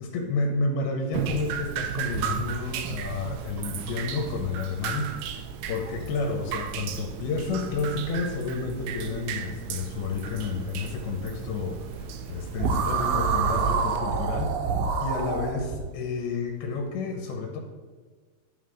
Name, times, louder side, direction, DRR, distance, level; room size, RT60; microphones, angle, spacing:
voice 1, 0.0-5.1 5.7-14.5 15.0-17.6, left 4 dB, 80° left, 2 dB, 2.7 m, -30 dB
Drip, 1.1-14.0, right 7 dB, 90° right, 2.6 m, -35 dB
sound 1, 12.6-15.8, right 5 dB, 75° right, 2.3 m, -26 dB
11.5 x 3.9 x 6.3 m, 1.5 s
omnidirectional pair, 4.5 m